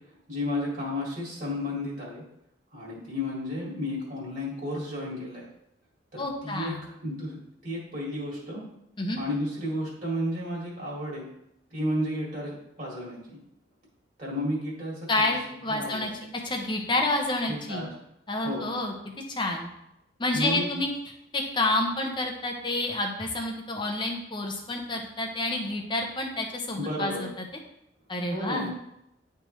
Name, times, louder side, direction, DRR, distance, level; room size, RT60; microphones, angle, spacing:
voice 1, 0.3-2.2 2.7-5.5 6.1-6.7 7.0-7.4 7.6-8.6 9.2-11.3 11.7-13.4 14.2-15.3 15.7-16.1 17.5-18.0 18.4-18.7 20.3-20.7 26.8-27.2 28.3-28.7, left 1 dB, 45° right, -4 dB, 1.9 m, -32 dB
voice 2, 6.2-6.8 9.0-9.2 15.1-16.1 16.4-17.9 18.3-18.9 19.3-19.7 20.2-20.9 21.3-27.4 28.1-28.9, left 2 dB, 25° left, 2 dB, 0.9 m, -29 dB
10.5 x 3.5 x 3.1 m, 0.82 s
head